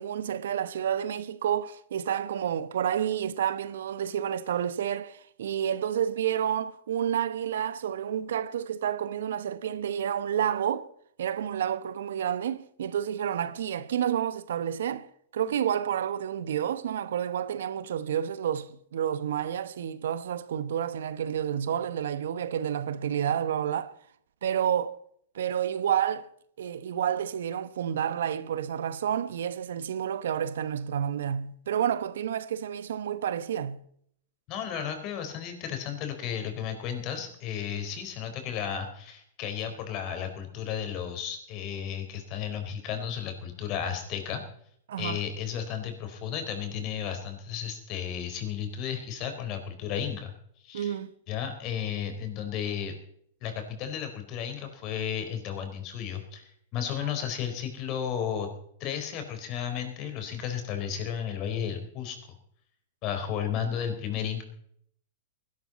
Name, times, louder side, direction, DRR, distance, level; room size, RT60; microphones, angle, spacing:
voice 1, 0.0-10.9 11.2-15.1 15.3-23.9 24.4-25.0 25.3-26.3 26.6-33.8 44.9-45.2 50.7-51.1, right 9 dB, 75° right, 0.9 m, -30 dB
voice 2, 34.5-44.4 45.0-50.3 50.6-51.0 51.3-52.9 53.4-58.5 58.8-62.2 63.0-64.4, left 8 dB, 45° left, 4.3 m, -33 dB
20.0 x 12.0 x 4.2 m
hypercardioid pair, 105°, 0 cm